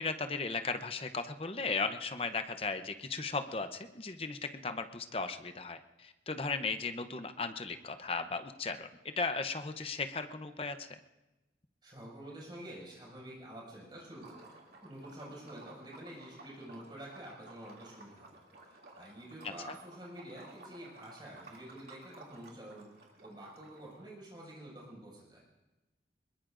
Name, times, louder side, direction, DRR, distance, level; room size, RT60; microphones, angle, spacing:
voice 1, 0.0-11.0 19.4-19.5, left 4 dB, 30° left, 8 dB, 0.7 m, -36 dB
voice 2, 11.8-14.5 14.8-18.4 18.7-22.9 23.2-25.4, right 1 dB, 25° right, -5 dB, 6.0 m, -48 dB
Liquid, 14.1-24.1, right 2 dB, 65° right, 2.6 m, -55 dB
24.0 x 21.5 x 2.6 m, 1.1 s
head